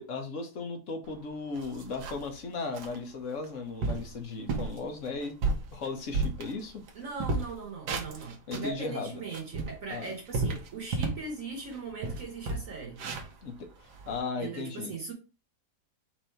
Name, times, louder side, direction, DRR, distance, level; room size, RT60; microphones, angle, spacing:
voice 1, 0.0-5.4 5.7-6.8 8.5-9.1 9.9-10.1 13.4-14.9, left 4 dB, 55° left, 1.0 m, -36 dB
sound 1, 1.1-1.2 1.5-2.3 2.7-3.0 3.4-3.5 3.8-4.1 4.5-4.8 5.2-6.9 7.2-8.7 9.2-11.3 11.7-11.8 12.0-14.2, right 3 dB, 80° right, 1.4 m, -32 dB
voice 2, 6.9-13.0 14.4-15.1, right 4 dB, 55° right, 1.3 m, -39 dB
4.5 x 2.6 x 4.3 m
omnidirectional pair, 1.7 m